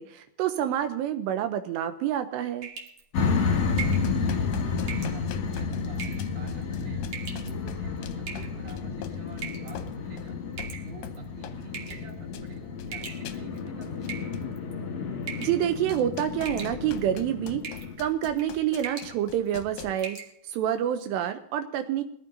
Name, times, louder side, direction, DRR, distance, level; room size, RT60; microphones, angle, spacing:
voice 1, 0.0-2.7 15.4-17.6 18.0-20.2 20.4-22.0, right 10 dB, 85° right, 7 dB, 2.8 m, -28 dB
sound 1, 2.6-3.0 3.8-4.1 4.9-5.2 5.9-6.3 7.1-7.5 8.3-8.7 9.4-9.7 10.6-11.2 11.7-12.1 12.9-13.6 14.0-14.7 15.3-15.6 15.9-16.1 16.4-17.0 17.6-17.9 18.3-18.5 18.8-19.1 19.5-19.6 20.0-20.3, right 6 dB, 65° right, 1.6 m, -39 dB
sound 2, 3.1-17.9, left 5 dB, 55° left, 1.7 m, -31 dB
sound 3, 3.6-11.6 11.9-14.5 15.3-15.4 15.6-19.9, left 8 dB, 75° left, 2.2 m, -44 dB
voice 2, 3.8-7.0 7.5-10.4 10.8-14.4, right 2 dB, 35° right, -1 dB, 2.6 m, -48 dB
21.5 x 14.0 x 2.7 m, 0.71 s
omnidirectional pair, 5.0 m